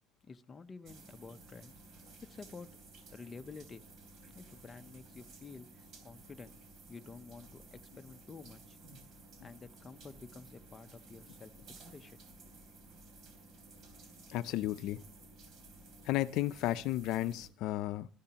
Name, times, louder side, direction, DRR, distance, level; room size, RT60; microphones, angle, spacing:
voice 1, 0.3-2.8 3.1-3.8 4.3-6.5 6.9-8.8 9.4-11.5 11.9-12.2, left 4 dB, 20° left, 8 dB, 0.7 m, -51 dB
sound 1, 0.8-17.5, right 2 dB, 45° right, 3.2 m, -55 dB
voice 2, 14.3-15.0 16.0-18.1, left 15 dB, 60° left, 14 dB, 0.5 m, -33 dB
19.0 x 13.0 x 2.9 m, 0.43 s
cardioid pair, 160°, 0 cm